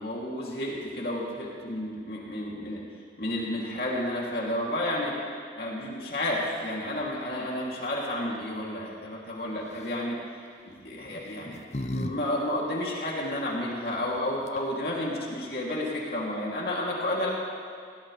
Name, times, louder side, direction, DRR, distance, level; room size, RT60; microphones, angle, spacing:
voice 1, 0.0-2.8 3.2-5.1 5.5-10.2 10.6-11.6 11.9-17.3, left 1 dB, 60° left, -4 dB, 2.9 m, -31 dB
sound 1, 9.6-10.1 11.0-12.1 12.4-12.5 14.2-14.3 14.5-14.9, left 1 dB, 40° left, 0.6 m, -35 dB
21.0 x 16.5 x 3.3 m, 2.1 s
head